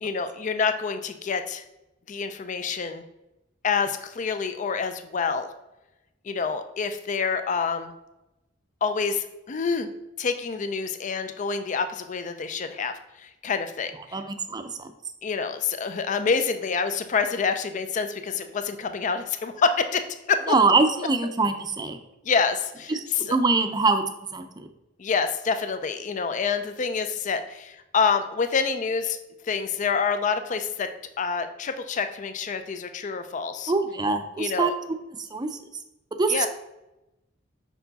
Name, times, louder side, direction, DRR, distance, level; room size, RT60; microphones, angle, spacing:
voice 1, 0.0-1.6 2.1-3.0 3.6-5.5 6.2-7.9 8.8-9.9 10.2-14.2 15.2-20.5 22.3-23.4 25.0-29.2 29.5-30.9 31.2-33.7 34.4-34.8 36.3-36.5, left 5 dB, 40° left, 9 dB, 0.4 m, -27 dB
voice 2, 14.1-14.9 20.5-22.0 22.9-24.0 24.3-24.7 33.7-34.7 35.3-35.5 36.2-36.5, right 3 dB, 20° right, 8 dB, 0.5 m, -23 dB
5.6 x 4.5 x 4.0 m, 0.93 s
head